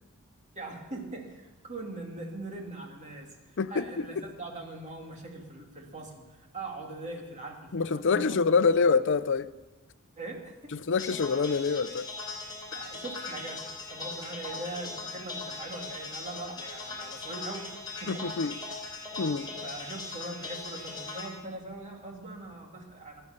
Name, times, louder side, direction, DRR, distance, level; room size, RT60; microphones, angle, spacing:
voice 1, 0.5-8.4 10.2-10.7 12.7-17.7 18.0-18.3 19.6-23.2, right 2 dB, 35° right, 1 dB, 2.5 m, -41 dB
voice 2, 3.6-4.2 7.7-9.5 10.9-12.1 18.1-18.5 19.2-19.5, left 5 dB, 55° left, 13 dB, 0.6 m, -26 dB
sound 1, 11.0-21.3, left 3 dB, 20° left, 3.5 m, -39 dB
17.0 x 11.0 x 6.8 m, 1.2 s
head